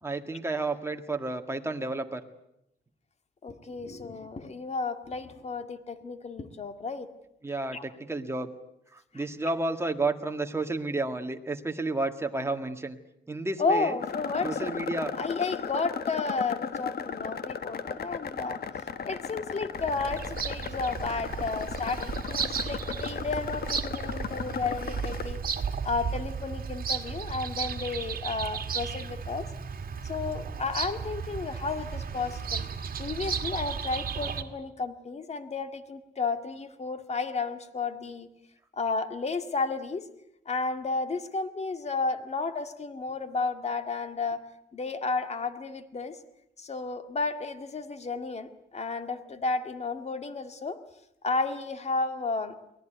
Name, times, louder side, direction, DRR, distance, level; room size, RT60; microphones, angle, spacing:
voice 1, 0.0-2.2 7.4-8.5 8.9-13.0 13.3-14.0 14.4-15.1, right 2 dB, 15° right, 5 dB, 2.0 m, -31 dB
voice 2, 3.4-7.1 7.7-7.8 9.1-9.2 13.6-14.7 15.2-18.6 19.0-25.4 25.8-29.5 30.0-32.7 33.0-38.3 38.8-40.1 40.5-44.4 44.7-46.2 46.6-50.8 51.2-52.5, left 4 dB, 35° left, 9 dB, 2.0 m, -32 dB
sound 1, 14.0-25.3, left 6 dB, 60° left, 1.5 m, -36 dB
Bird vocalization bird call bird song, 19.7-34.4, right 6 dB, 50° right, 2.0 m, -34 dB
23.5 x 18.0 x 9.3 m, 0.81 s
cardioid pair, 105°, 18 cm